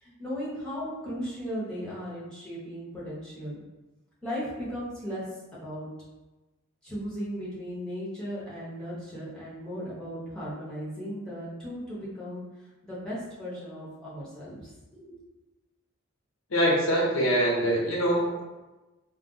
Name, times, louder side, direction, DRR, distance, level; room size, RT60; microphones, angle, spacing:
voice 1, 0.0-3.6 4.2-5.9 6.8-12.5 12.8-15.2, equal, 5° left, -9 dB, 1.0 m, -36 dB
voice 2, 16.5-18.4, equal, 85° left, -3 dB, 0.8 m, -24 dB
2.4 x 2.1 x 3.8 m, 1.1 s
head